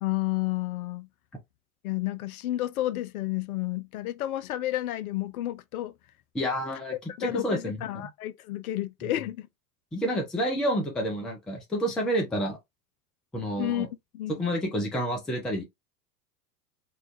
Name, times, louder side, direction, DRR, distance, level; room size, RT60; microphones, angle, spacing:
voice 1, 0.0-1.1 1.8-5.9 7.2-9.5 13.6-13.9 14.1-14.5, left 15 dB, 60° left, 0.6 m, -31 dB
voice 2, 6.3-6.9 7.2-8.1 9.9-12.6 13.3-13.9 14.3-15.6, equal, ahead, 0.3 m, -29 dB
4.5 x 2.3 x 2.5 m
figure-of-eight pair, 85°, 49 cm